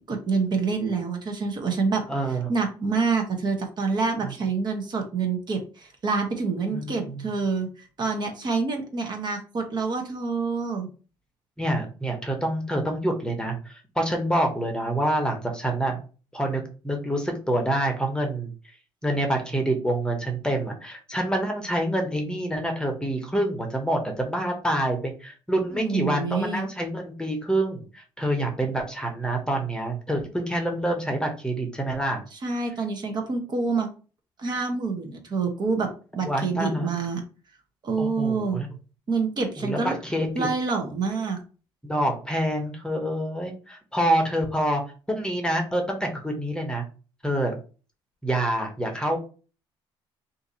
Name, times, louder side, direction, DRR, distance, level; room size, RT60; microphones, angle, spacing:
voice 1, 0.1-2.0 2.5-7.7 8.0-10.9 25.7-26.6 32.3-33.9 34.4-35.9 36.1-37.2 37.8-38.6 39.1-40.0 40.3-41.4, right 4 dB, 45° right, 3 dB, 0.9 m, -27 dB
voice 2, 2.1-2.5 4.2-4.3 6.7-7.3 11.6-16.0 16.3-18.7 19.0-32.2 36.2-36.9 38.0-38.7 39.6-40.5 41.8-44.8 45.1-46.8 47.2-47.5 48.2-49.2, right 1 dB, 10° left, 3 dB, 0.9 m, -27 dB
2.7 x 2.6 x 3.9 m, 0.36 s
cardioid pair, 85°, 11 cm